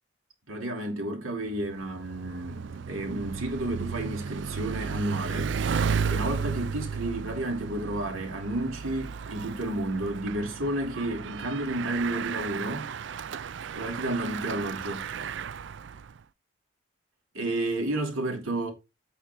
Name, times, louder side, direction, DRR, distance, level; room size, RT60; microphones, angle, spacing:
voice 1, 0.5-5.6 6.1-12.9 13.7-15.1 17.3-18.7, right 1 dB, 85° right, 3.0 m, -31 dB
Bicycle, 1.5-16.2, right 6 dB, 60° right, 0.4 m, -34 dB
8.9 x 5.0 x 4.5 m
head